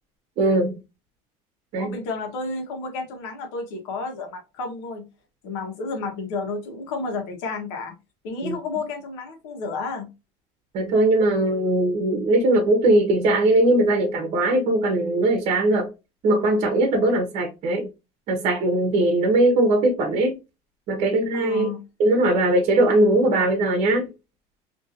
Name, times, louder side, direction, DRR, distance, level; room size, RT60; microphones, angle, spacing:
voice 1, 0.4-0.8 1.7-2.0 8.4-8.6 10.7-15.9 16.2-17.9 18.3-20.3 20.9-21.7 22.0-24.1, right 2 dB, 50° right, 0.8 m, -20 dB
voice 2, 1.8-5.1 5.4-7.9 8.2-10.1 21.3-21.8, left 3 dB, 85° left, 1.2 m, -31 dB
2.9 x 2.7 x 2.7 m
cardioid pair, 145°, 14 cm